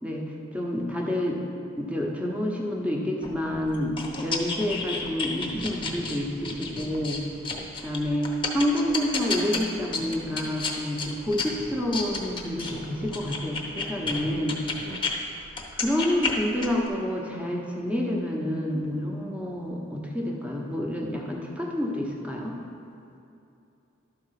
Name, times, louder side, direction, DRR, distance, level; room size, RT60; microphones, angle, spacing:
voice 1, 0.0-1.4 1.8-7.2 7.8-14.6 15.7-22.6, left 1 dB, 5° right, -1 dB, 1.0 m, -28 dB
sound 1, 3.2-15.1 15.5-16.9, left 4 dB, 25° left, 0.9 m, -32 dB
voice 2, 14.0-15.1, right 2 dB, 55° right, 7 dB, 0.5 m, -43 dB
12.0 x 4.3 x 5.8 m, 2.7 s
head